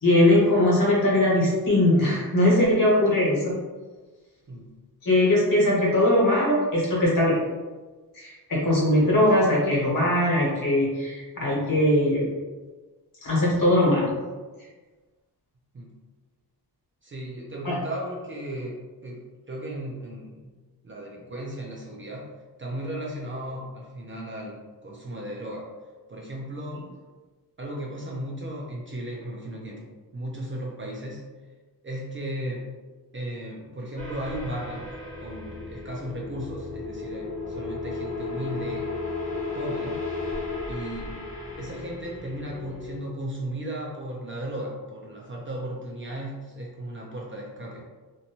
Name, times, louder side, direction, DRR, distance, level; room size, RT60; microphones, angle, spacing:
voice 1, 0.0-3.5 5.0-7.4 8.1-12.2 13.2-14.1 17.6-17.8, left 1 dB, 55° left, -5 dB, 1.1 m, -20 dB
voice 2, 17.0-20.5 20.8-22.3 22.6-25.7 26.1-26.9 27.6-31.2 31.8-32.7 33.1-34.9 35.2-38.9 39.3-40.0 40.7-41.1 41.6-47.9, right 1 dB, 35° right, -2 dB, 0.4 m, -35 dB
sound 1, 34.0-43.0, left 3 dB, 20° left, 0.7 m, -34 dB
2.6 x 2.2 x 2.8 m, 1.3 s
wide cardioid pair, 130°, 39 cm